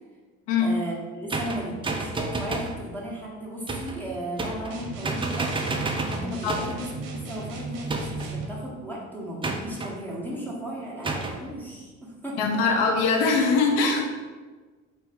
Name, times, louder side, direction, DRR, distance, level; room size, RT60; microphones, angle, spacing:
voice 1, 0.6-5.6 6.1-12.6, right 1 dB, 5° left, -5 dB, 1.0 m, -35 dB
sound 1, 1.3-2.8 3.7-4.0 4.4-4.8 5.0-6.8 7.9-8.4 9.4-9.9 11.0-11.4, right 3 dB, 15° right, 0.4 m, -30 dB
sound 2, 4.7-8.5, right 3 dB, 60° right, 0.7 m, -36 dB
voice 2, 12.4-14.1, left 4 dB, 80° left, 2 dB, 0.7 m, -22 dB
3.1 x 2.7 x 3.3 m, 1.4 s
hypercardioid pair, 60°, 38 cm